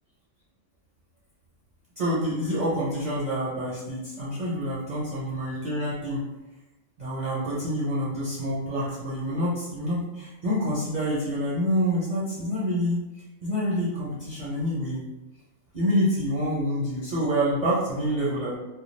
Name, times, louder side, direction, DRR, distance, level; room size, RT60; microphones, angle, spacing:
voice 1, 2.0-6.2 7.0-13.0 13.4-15.0 15.7-18.6, equal, 45° right, -8 dB, 0.6 m, -27 dB
2.3 x 2.2 x 3.1 m, 1.1 s
omnidirectional pair, 1.3 m